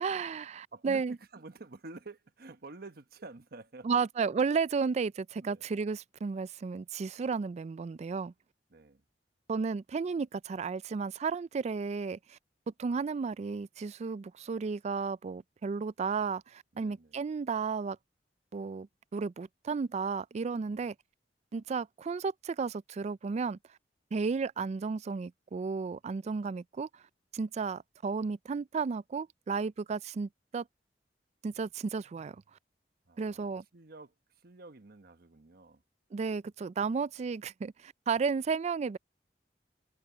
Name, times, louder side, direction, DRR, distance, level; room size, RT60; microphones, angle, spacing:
voice 1, 0.0-1.2 3.8-8.3 9.5-12.4 12.8-18.0 18.5-18.9 19.1-20.9 21.5-23.6 24.1-26.9 27.3-30.7 31.4-32.4 33.2-33.6 36.1-39.0, right 5 dB, 40° right, 0.3 m, -33 dB
voice 2, 0.7-4.0 5.4-5.6 8.7-9.0 16.7-17.2 20.7-20.9 33.1-35.8, right 3 dB, 60° right, 1.1 m, -50 dB
head